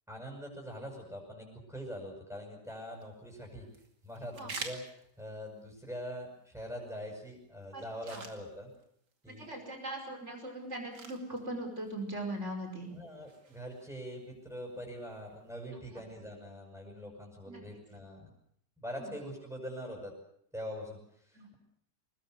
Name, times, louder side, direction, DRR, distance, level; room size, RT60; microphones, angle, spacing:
voice 1, 0.1-3.7 4.0-8.7 9.2-9.5 12.9-18.3 18.8-20.1 20.5-21.5, equal, ahead, -1 dB, 7.6 m, -43 dB
sound 1, 2.7-15.7, right 4 dB, 90° right, 3.1 m, -52 dB
voice 2, 9.3-12.9 17.5-17.6 19.0-19.1 21.3-21.5, right 1 dB, 45° right, 4 dB, 5.6 m, -40 dB
23.5 x 21.0 x 8.2 m, 0.69 s
omnidirectional pair, 1.8 m